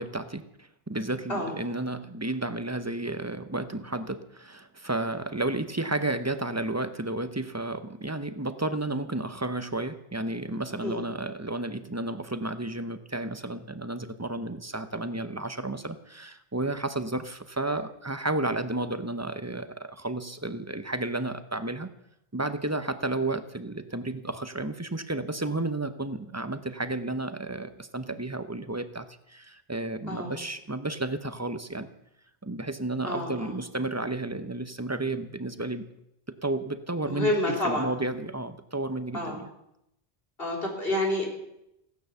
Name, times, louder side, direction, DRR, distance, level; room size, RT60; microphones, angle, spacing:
voice 1, 0.0-21.9 22.3-31.9 32.4-35.9 36.3-39.5, right 2 dB, 15° right, 11 dB, 0.8 m, -32 dB
voice 2, 33.0-33.5 37.1-37.9 39.1-39.4 40.4-41.3, left 1 dB, 65° left, 0 dB, 4.3 m, -28 dB
16.5 x 10.0 x 7.1 m, 0.82 s
omnidirectional pair, 1.0 m